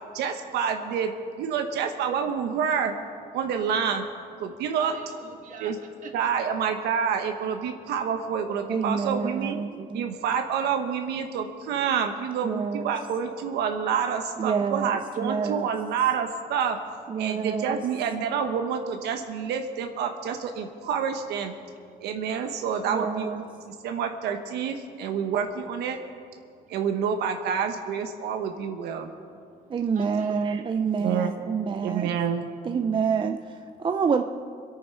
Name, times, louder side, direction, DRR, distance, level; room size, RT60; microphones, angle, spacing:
voice 1, 0.1-1.1 1.4-2.9 3.3-4.0 4.4-4.9 5.6-5.8 6.1-9.6 9.9-16.8 17.2-21.5 22.0-26.0 26.7-29.1 31.0-31.3 31.8-32.4, right 7 dB, 80° right, 5 dB, 1.1 m, -28 dB
voice 2, 4.4-6.5 7.6-7.9 9.7-10.2 20.7-20.8 21.6-22.7 23.5-23.9 24.9-25.1 26.4-26.9 28.2-31.1 33.5-34.0, right 4 dB, 50° right, 3 dB, 2.2 m, -50 dB
voice 3, 8.7-10.1 12.4-12.9 14.4-15.7 17.1-17.8 22.9-23.4 29.7-32.1 32.6-33.4 33.8-34.2, right 6 dB, 30° right, 6 dB, 0.5 m, -27 dB
23.0 x 8.8 x 5.7 m, 2.3 s
cardioid pair, 110°, 17 cm